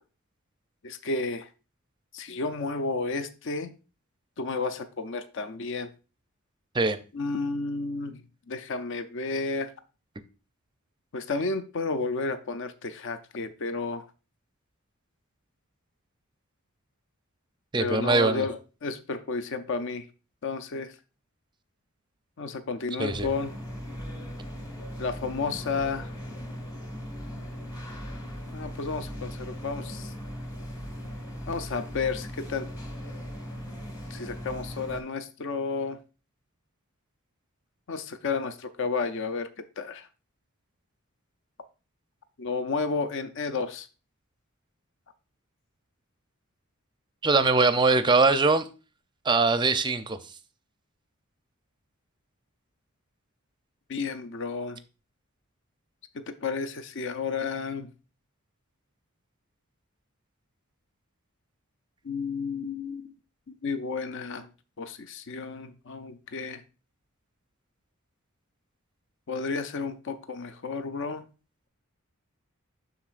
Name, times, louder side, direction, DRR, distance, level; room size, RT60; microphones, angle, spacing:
voice 1, 0.8-1.5 2.1-3.7 4.4-5.9 7.1-9.7 11.1-14.1 17.8-20.1 20.4-20.9 22.4-23.5 25.0-26.1 28.5-30.1 31.5-32.7 34.1-36.0 37.9-39.5 39.8-40.1 42.4-43.9 53.9-54.8 56.1-57.9 62.0-63.1 63.5-64.5 64.8-66.6 69.3-71.2, left 4 dB, 60° left, 0.5 m, -32 dB
voice 2, 17.7-18.4 23.0-23.3 47.2-48.7 49.3-50.2, right 3 dB, 20° right, 0.5 m, -22 dB
sound 1, 23.1-35.0, equal, 20° left, 1.3 m, -38 dB
12.0 x 4.0 x 2.5 m
head